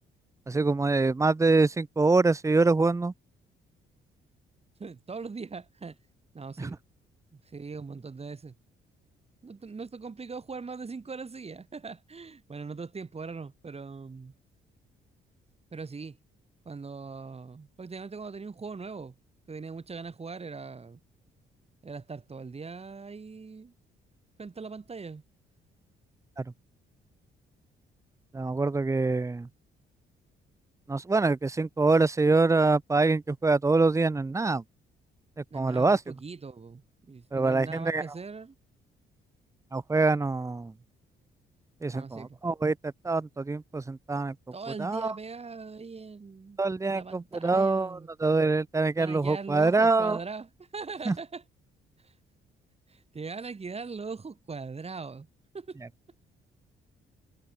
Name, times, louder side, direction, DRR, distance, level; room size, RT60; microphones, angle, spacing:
voice 1, 0.5-3.1 6.6-6.7 26.4-26.5 28.3-29.5 30.9-34.6 35.5-36.0 37.3-38.0 39.7-40.7 41.8-44.4 44.8-45.1 46.6-50.2 51.0-51.2, right 3 dB, 15° right, 0.7 m, -25 dB
voice 2, 4.8-6.0 6.3-6.8 7.3-8.5 9.4-14.3 15.7-16.2 16.7-19.2 19.5-21.0 21.8-23.7 24.4-25.2 35.5-38.6 41.9-42.4 44.5-46.6 46.9-48.1 49.0-51.4 52.0-52.1 52.9-55.3 55.5-55.8, right 4 dB, 30° right, 5.3 m, -40 dB
cardioid pair, 90°, 20 cm